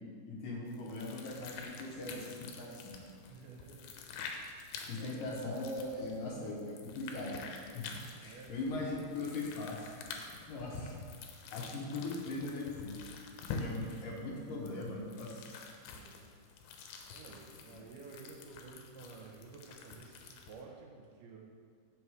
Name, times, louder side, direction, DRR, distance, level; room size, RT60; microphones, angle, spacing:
voice 1, 0.3-3.0 4.9-7.4 7.7-7.9 8.2-10.1 10.5-11.0 11.5-13.0 13.6-15.6 17.7-17.9, left 2 dB, 70° left, -3 dB, 2.4 m, -40 dB
sound 1, 0.7-20.6, left 4 dB, 85° left, 2.7 m, -48 dB
voice 2, 3.3-4.0 5.0-5.4 8.2-8.7 15.8-16.2 17.1-21.4, right 4 dB, 80° right, 0 dB, 2.8 m, -52 dB
7.2 x 6.2 x 4.7 m, 2.1 s
omnidirectional pair, 4.4 m